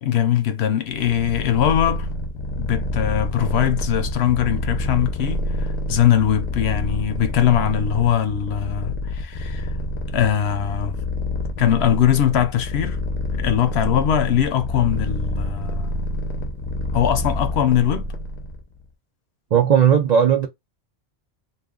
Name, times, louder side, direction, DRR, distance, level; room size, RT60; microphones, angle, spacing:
voice 1, 0.0-2.1 2.6-9.7 10.1-11.0 11.6-13.0 13.3-15.9 16.9-18.1, left 10 dB, 65° left, 0.8 m, -21 dB
Purr, 0.9-18.6, left 1 dB, 35° left, 0.5 m, -27 dB
voice 2, 19.5-20.5, right 8 dB, 65° right, 0.4 m, -16 dB
2.4 x 2.4 x 3.6 m
omnidirectional pair, 1.2 m